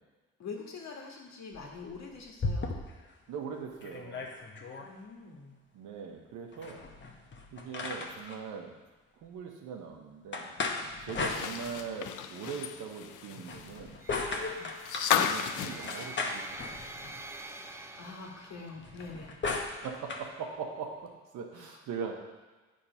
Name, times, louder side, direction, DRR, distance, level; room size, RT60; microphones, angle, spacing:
voice 1, 0.4-2.7 4.8-5.6 14.5-14.7 18.0-19.4 21.5-21.8, left 4 dB, 60° left, 0 dB, 1.6 m, -45 dB
sound 1, 1.5-3.1 3.5-3.6 3.8-4.9 6.5-8.4 10.3-12.0 13.3-15.2 15.9-17.3 18.8-20.3, left 3 dB, 40° left, 1.0 m, -37 dB
voice 2, 3.3-4.3 5.7-6.8 7.5-8.7 9.2-10.5 11.0-14.0 15.1-16.5 19.8-20.9 21.3-22.1, right 6 dB, 85° right, 2 dB, 1.2 m, -40 dB
sound 2, 11.1-17.2 17.5-17.6 19.0-19.1, left 8 dB, 85° left, 0.6 m, -34 dB
sound 3, 14.0-19.0, right 2 dB, 10° right, 0.4 m, -47 dB
8.8 x 3.8 x 5.6 m, 1.3 s
cardioid pair, 90°, 30 cm